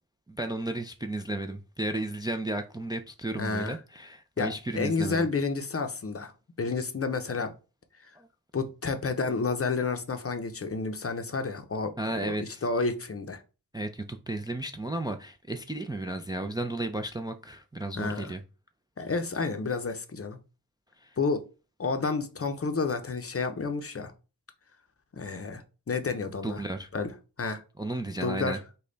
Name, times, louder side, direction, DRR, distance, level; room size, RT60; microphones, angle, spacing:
voice 1, 0.3-5.3 8.2-8.3 12.0-12.6 13.7-18.4 21.0-21.2 26.4-26.9 27.8-28.6, right 1 dB, 10° right, 0.4 m, -33 dB
voice 2, 3.4-3.8 4.4-6.3 6.6-7.5 8.0-8.1 8.5-11.9 12.2-13.4 17.9-18.3 19.0-20.4 21.2-21.4 21.8-24.1 25.1-26.6 26.9-27.1 27.4-27.6 28.2-28.6, left 4 dB, 40° left, 0.6 m, -30 dB
5.2 x 2.3 x 3.8 m
wide cardioid pair, 85°, 37 cm